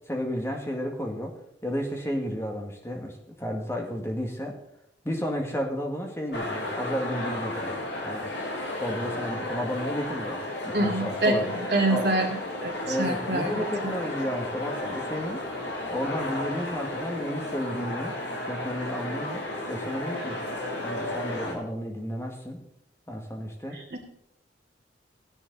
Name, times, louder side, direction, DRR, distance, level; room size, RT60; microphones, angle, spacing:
voice 1, 0.1-1.4 1.6-4.6 5.0-8.3 8.8-11.5 11.9-12.1 12.9-15.4 15.9-18.1 18.4-19.4 19.7-20.4 20.8-22.6 23.1-23.8, equal, 15° left, 2 dB, 2.0 m, -32 dB
sound 1, 6.3-21.5, left 1 dB, 65° left, 3.4 m, -33 dB
voice 2, 10.7-12.4 12.6-13.9 23.7-24.0, right 1 dB, 60° right, -3 dB, 3.0 m, -26 dB
15.5 x 10.5 x 4.2 m, 0.77 s
head